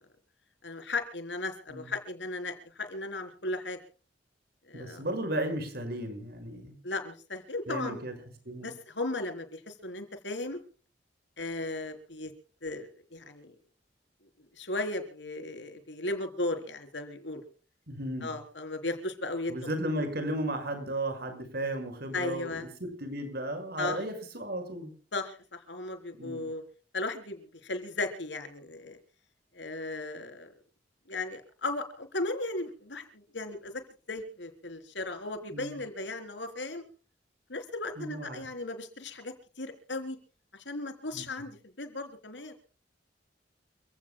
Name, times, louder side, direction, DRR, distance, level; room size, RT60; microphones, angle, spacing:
voice 1, 0.6-3.8 4.7-5.0 6.8-8.0 8.6-10.6 11.4-12.3 12.6-13.5 14.5-17.5 18.2-19.8 22.1-22.7 23.8-24.0 25.1-26.6 26.9-29.0 29.5-30.5 31.1-33.8 34.1-36.8 37.5-40.2 40.5-42.5, left 2 dB, 85° left, 6 dB, 3.9 m, -36 dB
voice 2, 4.7-6.8 7.7-8.1 8.5-8.7 17.9-18.3 19.5-24.9 26.2-26.5 35.5-35.8 38.0-38.4 41.1-41.2, right 1 dB, 60° right, 7 dB, 5.8 m, -34 dB
29.0 x 16.5 x 2.3 m, 0.39 s
head